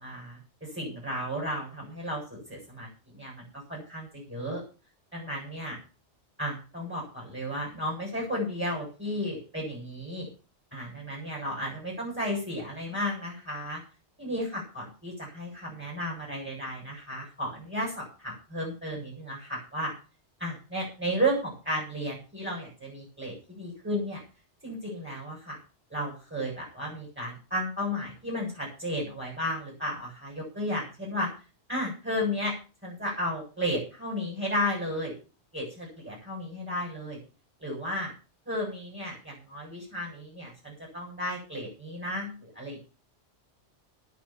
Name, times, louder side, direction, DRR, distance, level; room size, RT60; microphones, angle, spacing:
voice 1, 0.0-2.9 3.1-4.6 5.1-5.8 6.4-10.3 10.7-13.8 14.2-19.9 20.4-24.2 24.6-25.6 25.9-31.3 31.7-32.5 32.8-35.1 35.5-37.2 37.6-38.1 38.5-42.8, equal, 10° right, -3 dB, 7.2 m, -33 dB
9.5 x 9.5 x 7.3 m, 0.34 s
omnidirectional pair, 1.1 m